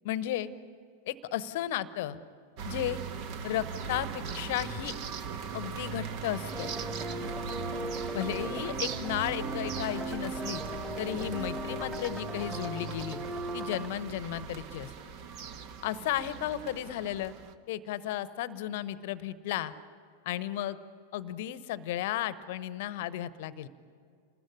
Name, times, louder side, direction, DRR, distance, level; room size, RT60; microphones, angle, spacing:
voice 1, 0.0-0.5 1.1-2.2 2.6-3.0 3.4-4.9 5.5-6.7 8.1-10.6 11.0-13.2 13.5-14.9 15.8-17.3 17.7-19.7 20.2-20.8 21.1-23.7, left 12 dB, 50° left, 16 dB, 1.0 m, -34 dB
sound 1, 2.6-17.5, right 6 dB, 45° right, 1.3 m, -39 dB
sound 2, 6.5-13.9, right 1 dB, 10° right, 2.4 m, -38 dB
28.5 x 20.5 x 9.8 m, 2.2 s
figure-of-eight pair, 90°, 0 cm